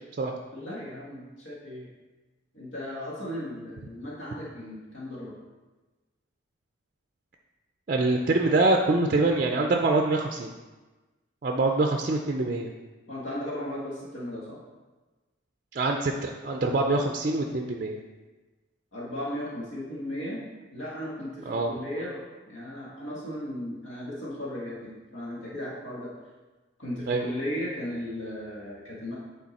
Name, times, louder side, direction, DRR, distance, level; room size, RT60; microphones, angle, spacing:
voice 1, 0.5-1.9 2.5-5.3 11.7-11.8 13.1-14.6 18.9-26.1 26.8-29.2, left 1 dB, 75° left, -5 dB, 1.5 m, -36 dB
voice 2, 7.9-10.5 11.4-12.7 15.7-18.0 21.5-21.7 27.1-27.2, right 2 dB, 40° right, 2 dB, 0.4 m, -25 dB
8.7 x 3.7 x 4.1 m, 1.2 s
head